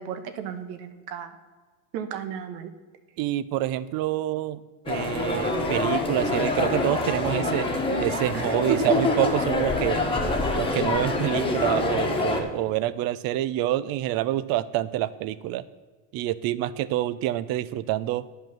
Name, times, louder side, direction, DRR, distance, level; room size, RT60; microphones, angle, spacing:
voice 1, 0.0-1.3 1.9-2.7 8.5-9.0, right 7 dB, 85° right, 9 dB, 1.4 m, -33 dB
voice 2, 3.2-4.6 4.9-7.7 8.0-10.0 10.5-15.6 16.1-18.3, right 13 dB, 50° right, 17 dB, 0.6 m, -27 dB
sound 1, 4.9-12.4, left 2 dB, 10° left, 1.3 m, -26 dB
10.5 x 5.6 x 7.3 m, 1.4 s
supercardioid pair, 135°, 48 cm